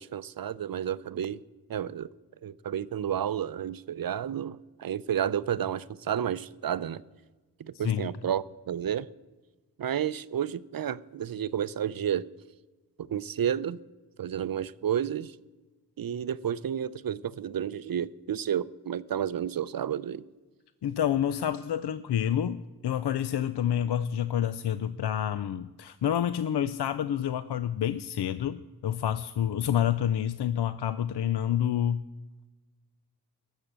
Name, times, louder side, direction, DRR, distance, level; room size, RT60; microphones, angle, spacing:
voice 1, 0.0-1.4 1.7-2.1 2.4-7.0 7.6-9.1 9.8-12.3 13.0-13.8 14.2-15.4 16.0-20.2, right 9 dB, 55° right, 0.5 m, -31 dB
voice 2, 7.7-8.1 20.8-32.1, left 10 dB, 70° left, 0.5 m, -28 dB
14.5 x 6.4 x 8.7 m
wide cardioid pair, 65°, 41 cm